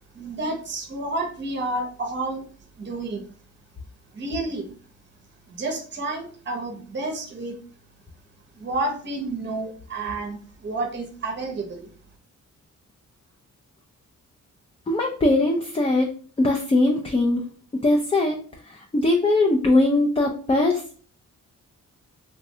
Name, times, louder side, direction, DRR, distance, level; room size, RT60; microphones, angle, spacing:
voice 1, 0.1-2.4 2.8-3.3 4.1-4.7 5.5-7.6 8.6-11.9, right 2 dB, 35° right, 2 dB, 0.7 m, -30 dB
voice 2, 14.9-16.1 16.4-17.4 17.8-18.4 18.7-20.8, left 2 dB, 20° left, 1 dB, 0.4 m, -20 dB
3.4 x 2.1 x 2.7 m, 0.43 s
cardioid pair, 95°, 32 cm